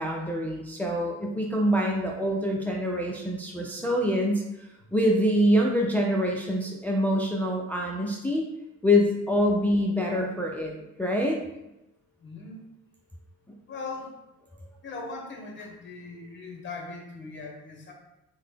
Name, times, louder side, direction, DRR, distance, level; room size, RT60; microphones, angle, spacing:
voice 1, 0.0-8.4 8.8-10.7 11.0-11.4, equal, 5° left, -1 dB, 0.4 m, -25 dB
voice 2, 12.2-12.6 13.7-14.1 14.8-17.9, left 3 dB, 40° left, 0 dB, 1.0 m, -39 dB
3.8 x 2.1 x 3.4 m, 0.95 s
cardioid pair, 90°, 30 cm